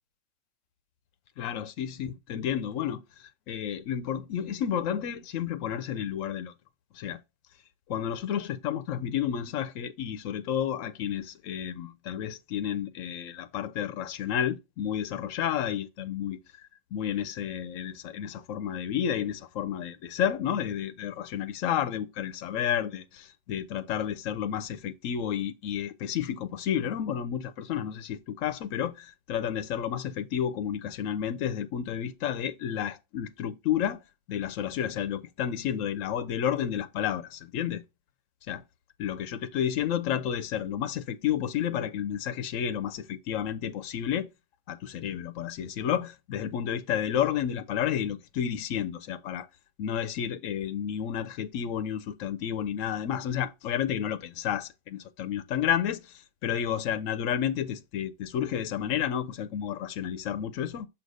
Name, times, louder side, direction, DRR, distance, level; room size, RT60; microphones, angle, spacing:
voice 1, 1.4-6.5 6.9-7.2 7.9-34.0 34.3-37.8 38.5-38.6 39.0-44.3 44.7-49.5 49.8-60.9, left 9 dB, 85° left, 1.0 m, -31 dB
6.3 x 2.9 x 5.3 m
omnidirectional pair, 1.3 m